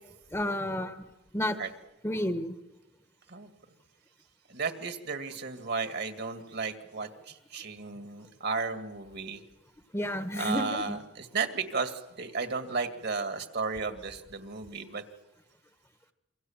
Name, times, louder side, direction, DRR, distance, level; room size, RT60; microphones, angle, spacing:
voice 1, 0.3-1.0 1.3-1.6 2.0-2.5 9.9-10.9, left 1 dB, 15° left, 8 dB, 1.3 m, -31 dB
voice 2, 4.5-9.4 10.4-15.0, right 4 dB, 60° right, 7 dB, 2.2 m, -34 dB
27.5 x 24.0 x 7.3 m, 0.97 s
head